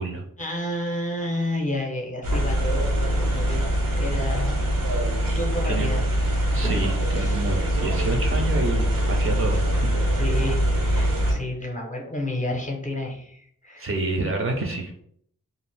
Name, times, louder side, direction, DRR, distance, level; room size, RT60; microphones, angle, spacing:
voice 1, 0.4-3.6 3.9-4.6 5.3-6.0 7.1-7.4 10.1-13.9, left 1 dB, 25° left, 1 dB, 0.5 m, -30 dB
sound 1, 2.2-11.3, equal, 85° right, 0.8 m, -23 dB
voice 2, 6.5-10.3 13.8-15.0, right 2 dB, 40° right, 1 dB, 0.5 m, -29 dB
2.5 x 2.4 x 3.2 m, 0.67 s
wide cardioid pair, 135°, 33 cm